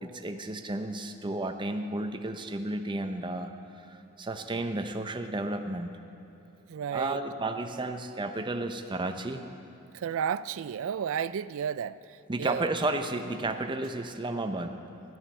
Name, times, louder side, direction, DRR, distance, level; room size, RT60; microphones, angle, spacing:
voice 1, 0.0-3.5 3.8-5.9 6.9-9.4 12.3-14.7, right 2 dB, 20° right, 6 dB, 0.6 m, -32 dB
voice 2, 6.7-7.2 9.9-12.7, right 8 dB, 65° right, 16 dB, 0.3 m, -32 dB
16.5 x 12.0 x 4.3 m, 3.0 s
head